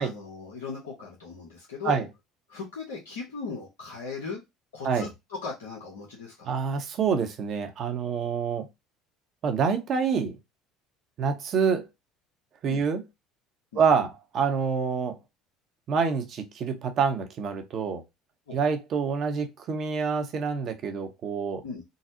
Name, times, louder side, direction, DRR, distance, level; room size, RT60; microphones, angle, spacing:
voice 1, 0.0-2.0 2.5-4.4 4.7-6.5 12.7-12.8 13.7-13.8 18.5-18.6 21.6-21.8, left 4 dB, 85° left, 0.9 m, -38 dB
voice 2, 6.5-8.7 9.4-10.4 11.2-11.8 12.6-13.0 13.7-15.2 15.9-18.0 18.5-21.6, right 6 dB, 50° right, 0.8 m, -27 dB
3.9 x 2.0 x 2.7 m
hypercardioid pair, 75°, 0 cm